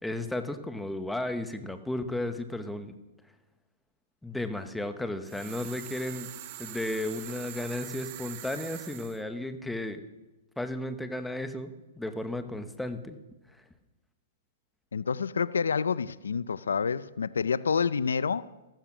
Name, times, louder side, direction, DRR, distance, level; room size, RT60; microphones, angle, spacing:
voice 1, 0.0-2.9 4.2-6.3 6.6-10.0 10.6-13.1, left 1 dB, 5° left, 1.2 m, -34 dB
sound 1, 5.2-9.2, right 13 dB, 45° right, 1.4 m, -43 dB
voice 2, 14.9-18.5, left 6 dB, 90° left, 0.5 m, -28 dB
14.5 x 14.5 x 6.1 m
hypercardioid pair, 135°, 0 cm